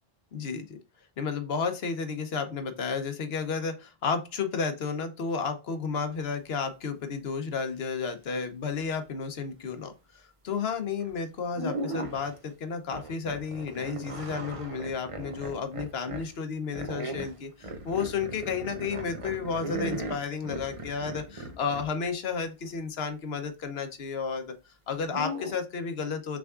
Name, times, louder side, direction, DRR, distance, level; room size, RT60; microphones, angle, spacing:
voice 1, 0.3-0.8 1.2-24.5 24.9-26.4, left 5 dB, 80° left, 8 dB, 1.0 m, -32 dB
sound 1, 11.0-11.2 11.5-12.4 12.9-16.3 16.7-21.9 25.0-25.6, right 1 dB, 35° right, 0.7 m, -37 dB
6.1 x 3.5 x 2.4 m, 0.29 s
omnidirectional pair, 1.0 m